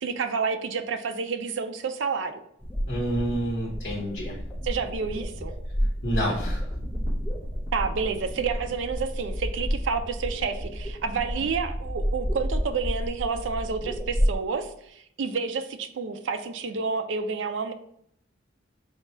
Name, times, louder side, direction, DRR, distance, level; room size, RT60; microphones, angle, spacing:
voice 1, 0.0-2.4 4.6-5.5 7.7-17.7, right 5 dB, 75° right, 7 dB, 0.4 m, -29 dB
sound 1, 2.6-14.3, equal, 10° left, 0.5 m, -31 dB
voice 2, 2.9-4.4 6.0-6.6, right 1 dB, 55° left, -4 dB, 0.8 m, -28 dB
sound 2, 6.3-10.1 10.7-10.8, equal, 25° right, 1.0 m, -35 dB
3.6 x 2.3 x 4.2 m, 0.71 s
head